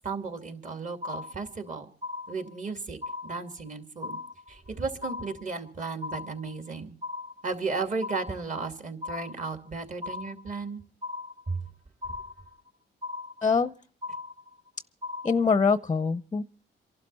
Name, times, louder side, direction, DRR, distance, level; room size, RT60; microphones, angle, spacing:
voice 1, 0.0-1.9 2.3-4.2 4.5-7.0 7.4-10.8 11.5-11.6, right 4 dB, 40° right, 2.6 m, -34 dB
sound 1, 1.0-1.7 2.0-2.7 3.0-3.7 4.0-4.7 5.0-5.7 6.0-6.7 7.0-7.7 8.0-8.7 9.0-9.7 10.0-10.7 11.0-11.7 12.0-12.7 13.0-13.7 14.0-14.7 15.0-15.7, left 3 dB, 20° right, 0.9 m, -38 dB
voice 2, 13.4-13.7 15.2-16.4, left 5 dB, 20° left, 0.7 m, -24 dB
28.0 x 12.0 x 4.2 m
cardioid pair, 90°, 20 cm